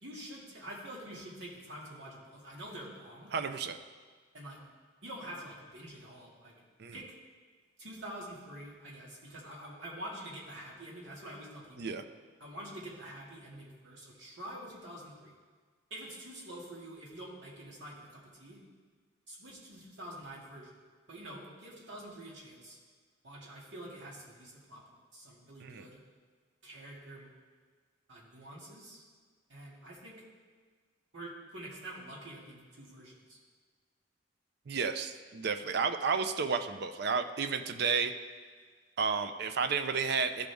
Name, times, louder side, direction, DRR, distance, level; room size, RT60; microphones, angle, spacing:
voice 1, 0.0-3.3 4.3-4.6 5.0-6.5 6.9-7.1 7.8-11.9 12.4-15.3 15.9-18.6 19.3-20.7 21.1-22.8 23.2-24.8 25.1-26.0 26.6-27.3 28.1-29.0 29.5-30.2 31.1-33.4, right 1 dB, 80° right, -4 dB, 2.1 m, -46 dB
voice 2, 3.3-3.8 6.8-7.0 11.8-12.0 25.6-25.9 34.7-38.1 39.0-40.5, right 5 dB, 60° right, 9 dB, 0.5 m, -32 dB
13.5 x 5.1 x 3.5 m, 1.5 s
head